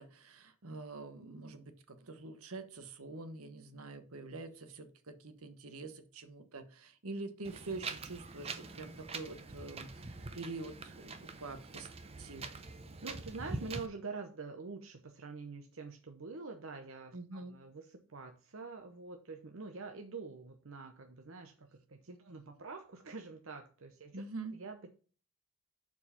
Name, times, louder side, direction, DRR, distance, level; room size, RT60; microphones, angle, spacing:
voice 1, 0.0-11.9 12.2-12.5 17.1-17.6 24.1-24.5, right 3 dB, 80° right, 10 dB, 1.2 m, -46 dB
Wind, 7.4-13.9, right 3 dB, 25° right, 0.7 m, -44 dB
voice 2, 13.0-24.2 24.5-24.9, right 4 dB, 65° right, 5 dB, 0.8 m, -46 dB
6.9 x 4.7 x 5.6 m, 0.38 s
head